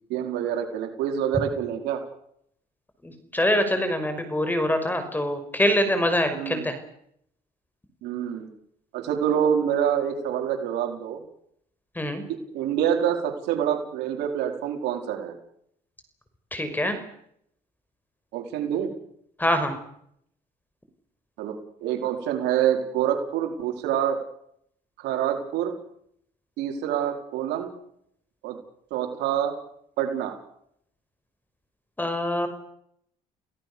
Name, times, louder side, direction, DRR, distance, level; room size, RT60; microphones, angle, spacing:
voice 1, 0.1-2.0 6.3-6.7 8.0-8.5 8.9-11.2 12.5-15.4 18.3-18.9 21.4-21.5 21.8-24.2 25.0-25.7 26.6-27.7 28.4-28.6 28.9-29.5 30.0-30.4, right 9 dB, 90° right, 4 dB, 4.6 m, -26 dB
voice 2, 3.0-6.7 12.0-12.2 16.5-17.0 19.4-19.8 32.0-32.5, left 1 dB, 10° left, 9 dB, 5.8 m, -24 dB
30.0 x 17.5 x 7.1 m, 0.71 s
cardioid pair, 110°, 17 cm